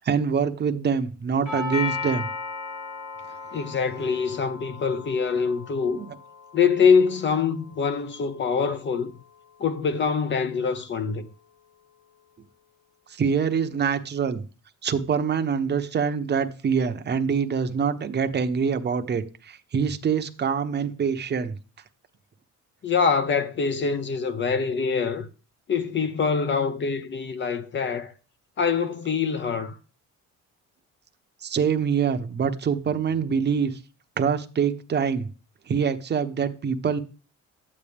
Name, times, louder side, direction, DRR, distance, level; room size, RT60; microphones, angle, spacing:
voice 1, 0.0-2.3 5.9-6.1 13.1-14.4 14.8-21.6 31.4-33.8 34.2-35.3 35.7-37.0, right 6 dB, 35° right, 0.9 m, -25 dB
Doorbell, 1.5-9.5, left 4 dB, 80° left, 4.4 m, -37 dB
voice 2, 3.5-6.0 6.5-9.1 9.6-11.3 22.8-25.3 25.7-28.1 28.6-29.8, left 5 dB, 40° left, 0.8 m, -24 dB
11.5 x 8.6 x 3.5 m
cardioid pair, 120°, 29 cm